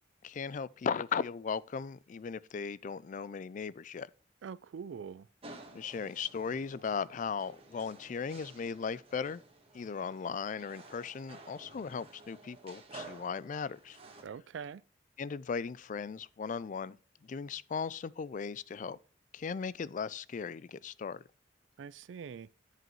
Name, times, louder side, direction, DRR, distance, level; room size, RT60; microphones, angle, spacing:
voice 1, 0.2-4.1 5.7-9.4 9.7-14.0 15.2-17.0 17.2-19.0 19.3-21.2, left 6 dB, 45° left, 0.3 m, -37 dB
voice 2, 4.4-5.3 14.2-14.8 21.8-22.5, right 6 dB, 85° right, 0.4 m, -43 dB
sound 1, 5.4-14.2, right 2 dB, 30° right, 1.6 m, -53 dB
7.7 x 7.6 x 3.0 m
head